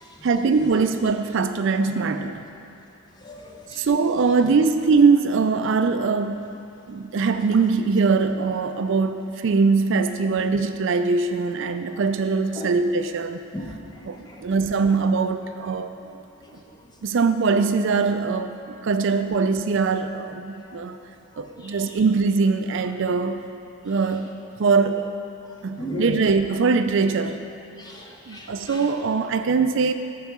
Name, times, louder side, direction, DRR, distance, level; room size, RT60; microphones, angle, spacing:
voice 1, 0.2-2.5 3.8-6.5 6.9-13.4 14.0-15.9 17.0-21.0 21.4-23.4 23.8-24.3 24.6-25.1 25.6-27.4 28.3-29.9, right 4 dB, 60° right, 9 dB, 0.4 m, -22 dB
voice 2, 3.2-3.8 12.6-12.7 13.5-13.7 21.6-21.7 25.8-26.2 27.8-28.8, left 1 dB, 20° left, -1 dB, 1.1 m, -34 dB
14.0 x 4.7 x 6.0 m, 2.9 s
head